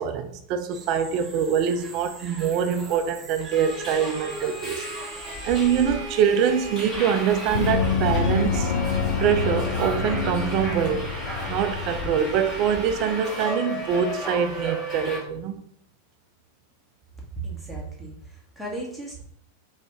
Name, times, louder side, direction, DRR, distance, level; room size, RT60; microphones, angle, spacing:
voice 1, 0.0-4.8 5.4-8.7 9.2-11.1 11.5-15.6, right 8 dB, 40° right, 0.3 m, -24 dB
sound 1, 0.7-5.9, right 3 dB, 20° right, 0.7 m, -44 dB
Subway metro underground, 3.5-15.2, equal, 25° left, 1.2 m, -33 dB
Gong, 7.5-12.8, left 5 dB, 55° left, 0.3 m, -27 dB
voice 2, 17.4-19.2, right 2 dB, ahead, 1.0 m, -35 dB
2.7 x 2.5 x 3.4 m
figure-of-eight pair, 90°, 0 cm